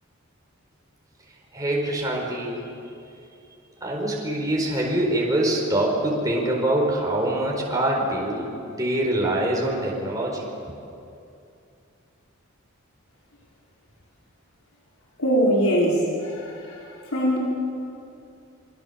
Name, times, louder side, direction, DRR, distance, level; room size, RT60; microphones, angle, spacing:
voice 1, 1.5-2.6 3.8-10.5, right 1 dB, 15° right, -2 dB, 4.4 m, -24 dB
voice 2, 15.2-17.4, equal, 80° left, -4 dB, 5.3 m, -22 dB
28.0 x 24.0 x 7.0 m, 2.6 s
head